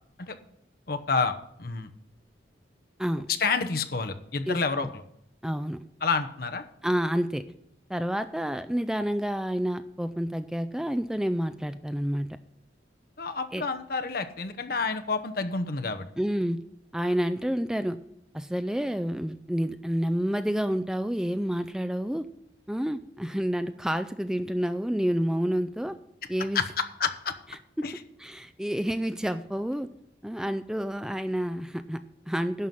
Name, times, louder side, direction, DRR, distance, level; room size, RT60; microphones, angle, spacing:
voice 1, 0.9-1.9 3.4-5.0 6.0-6.6 13.2-16.1 26.5-27.3 27.8-27.9, left 4 dB, 55° left, 8 dB, 0.9 m, -29 dB
voice 2, 4.5-4.9 5.4-5.8 6.8-7.4 7.9-12.3 13.5-13.6 16.2-16.6 16.9-18.0 18.3-22.2 22.7-26.0 26.3-26.6 28.2-29.9 30.2-32.7, equal, 5° right, 10 dB, 0.4 m, -29 dB
11.0 x 5.6 x 7.5 m, 0.74 s
head